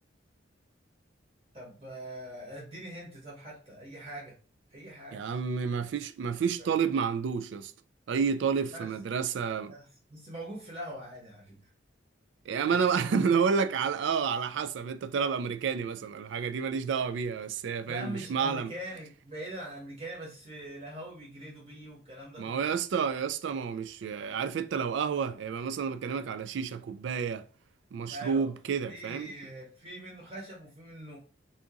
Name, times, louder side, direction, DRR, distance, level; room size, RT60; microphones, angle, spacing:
voice 1, 1.5-4.3 4.7-5.3 6.6-6.8 8.7-8.9 9.7-11.7 12.6-13.3 17.9-22.7 28.1-28.5 28.9-31.2, right 1 dB, 30° right, 1.1 m, -43 dB
voice 2, 5.1-7.7 8.1-9.7 12.5-18.7 22.4-27.4 27.9-29.3, right 6 dB, 65° right, 0.3 m, -30 dB
2.8 x 2.5 x 3.6 m
head